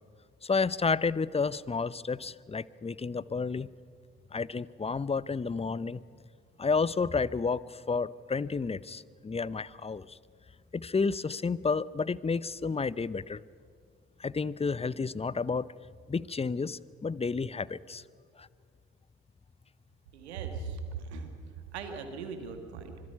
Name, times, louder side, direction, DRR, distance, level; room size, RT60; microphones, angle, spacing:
voice 1, 0.4-3.7 4.3-6.0 6.6-10.2 10.7-13.4 14.2-15.7 16.1-18.0 18.4-18.5, left 4 dB, 20° left, 20 dB, 0.7 m, -31 dB
voice 2, 20.1-21.3 21.7-22.9, right 5 dB, 90° right, 6 dB, 1.9 m, -39 dB
25.5 x 21.0 x 5.7 m, 2.1 s
hypercardioid pair, 45°, 32 cm